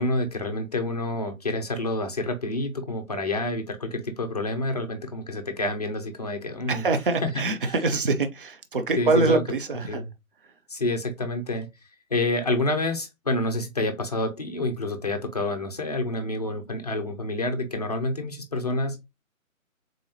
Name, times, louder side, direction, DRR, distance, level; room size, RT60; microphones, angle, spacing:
voice 1, 0.0-6.9 7.2-7.3 9.0-9.4 9.9-10.1 10.7-11.7 12.1-19.0, left 2 dB, 30° left, 0.5 m, -28 dB
voice 2, 6.7-10.0, right 3 dB, 40° right, 0.5 m, -24 dB
3.8 x 3.3 x 2.7 m
figure-of-eight pair, 145°, 42 cm